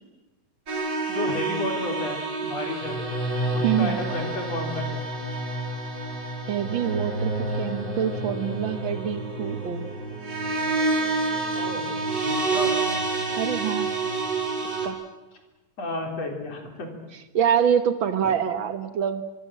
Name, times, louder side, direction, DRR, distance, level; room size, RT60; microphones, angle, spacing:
sound 1, 0.7-14.9, right 2 dB, 30° right, 4.5 m, -28 dB
voice 1, 1.1-3.0 3.5-5.1 11.6-11.9 12.2-12.7 15.8-17.0 18.2-18.3, left 2 dB, 45° left, 4 dB, 4.7 m, -32 dB
voice 2, 3.6-4.0 6.5-9.8 13.4-13.9 14.8-15.0 17.3-19.2, right 8 dB, 90° right, 10 dB, 1.1 m, -25 dB
25.0 x 24.0 x 7.5 m, 1.1 s
omnidirectional pair, 4.0 m